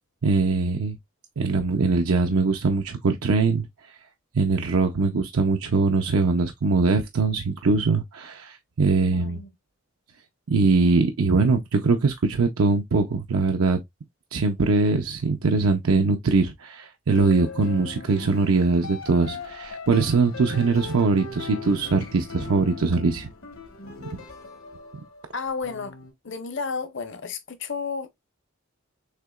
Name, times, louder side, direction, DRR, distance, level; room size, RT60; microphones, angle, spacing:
voice 1, 0.2-1.0 1.4-3.7 4.3-9.4 10.5-13.8 14.3-23.3, right 3 dB, 80° right, 0.6 m, -22 dB
voice 2, 9.1-9.5 25.3-25.9 26.2-28.1, left 5 dB, 60° left, 0.8 m, -32 dB
sound 1, 17.1-26.1, left 4 dB, 75° left, 1.2 m, -39 dB
6.6 x 2.8 x 2.3 m
head